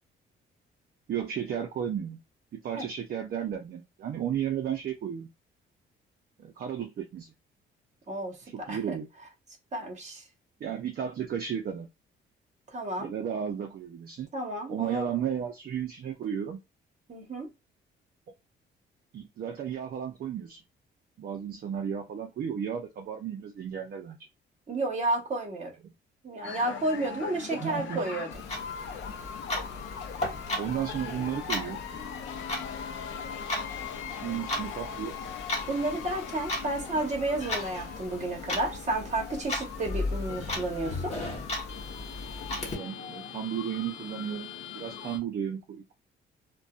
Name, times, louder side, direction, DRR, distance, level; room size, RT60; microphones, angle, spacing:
voice 1, 1.1-2.2 2.5-5.3 6.4-7.3 8.4-9.1 10.6-11.9 13.0-14.3 14.7-16.6 19.1-20.6 21.2-24.2 25.8-25.9 27.5-28.1 30.6-31.8 33.9-35.2 42.8-45.9, right 8 dB, 50° right, 0.5 m, -34 dB
voice 2, 8.1-8.4 8.7-9.0 9.7-10.2 12.7-13.1 14.3-15.1 17.1-17.5 24.7-25.7 26.2-28.3 35.7-41.1, right 2 dB, 35° right, 1.1 m, -31 dB
sound 1, 26.4-45.2, left 7 dB, 70° left, 0.4 m, -41 dB
Clock, 28.3-42.7, left 2 dB, 30° left, 1.1 m, -36 dB
2.6 x 2.2 x 2.3 m
cardioid pair, 90°, 20 cm